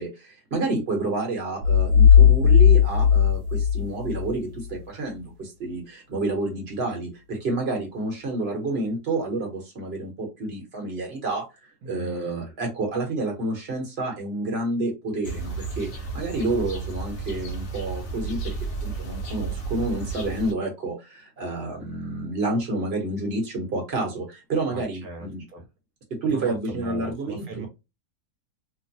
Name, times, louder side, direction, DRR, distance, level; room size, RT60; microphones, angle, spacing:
voice 1, 0.0-11.4 11.8-15.9 16.1-25.4 26.1-27.7, right 2 dB, 45° right, 1 dB, 1.1 m, -29 dB
sound 1, 1.6-4.3, left 8 dB, 90° right, 1.2 m, -16 dB
voice 2, 11.8-12.5 24.7-25.3 25.5-25.7 26.2-27.7, right 3 dB, 70° right, 3 dB, 1.3 m, -38 dB
sound 2, 15.2-20.5, right 4 dB, 65° left, 1.0 m, -32 dB
3.0 x 2.1 x 2.7 m, 0.25 s
omnidirectional pair, 1.7 m